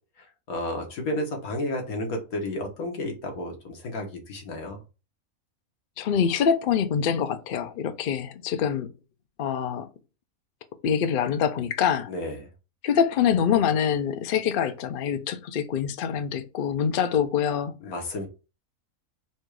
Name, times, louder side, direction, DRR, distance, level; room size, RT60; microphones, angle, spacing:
voice 1, 0.2-4.8 12.1-12.5 17.8-18.3, left 1 dB, 80° left, 1.7 m, -32 dB
voice 2, 6.0-8.9 9.4-9.9 10.8-12.1 12.8-17.7, left 8 dB, 60° left, 0.5 m, -25 dB
4.4 x 2.3 x 4.7 m
omnidirectional pair, 1.5 m